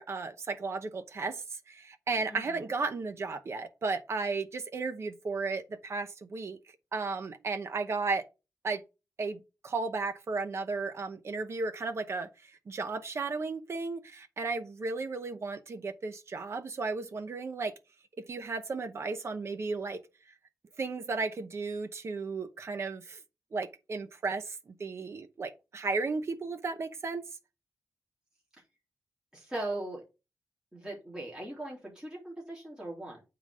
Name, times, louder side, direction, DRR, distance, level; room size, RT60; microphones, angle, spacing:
voice 1, 0.0-6.6 6.9-8.2 8.6-8.8 9.2-17.7 18.2-20.0 20.8-23.2 23.5-27.2, right 4 dB, 50° right, 0.9 m, -34 dB
voice 2, 2.3-2.7 29.3-30.0 30.7-33.2, right 1 dB, 15° right, 3.4 m, -39 dB
8.8 x 3.9 x 4.8 m
wide cardioid pair, 145°, 6 cm